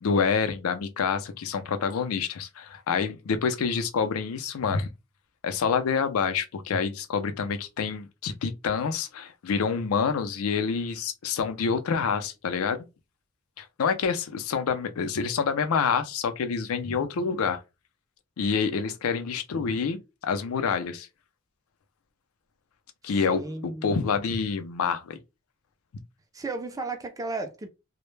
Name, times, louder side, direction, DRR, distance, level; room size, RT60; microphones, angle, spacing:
voice 1, 0.0-4.9 5.4-12.8 13.6-17.6 18.4-21.1 23.0-25.2, left 5 dB, 80° left, 0.4 m, -27 dB
voice 2, 23.3-24.0 26.3-27.7, right 3 dB, 15° right, 0.4 m, -34 dB
2.1 x 2.0 x 3.1 m
head